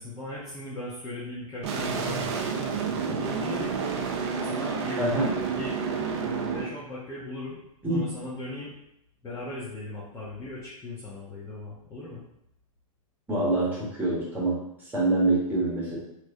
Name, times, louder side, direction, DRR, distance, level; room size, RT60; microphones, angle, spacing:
voice 1, 0.0-2.4 3.1-4.1 4.4-5.0 5.5-5.8 6.1-7.6 7.9-8.7 9.2-12.2, left 2 dB, 20° left, -8 dB, 0.8 m, -38 dB
sound 1, 1.6-6.7, right 5 dB, 50° right, 0.6 m, -30 dB
voice 2, 5.0-5.3 7.8-8.0 13.3-14.5 14.9-16.0, right 2 dB, 10° right, -7 dB, 1.3 m, -25 dB
3.1 x 3.0 x 2.6 m, 0.78 s
hypercardioid pair, 115°, 18 cm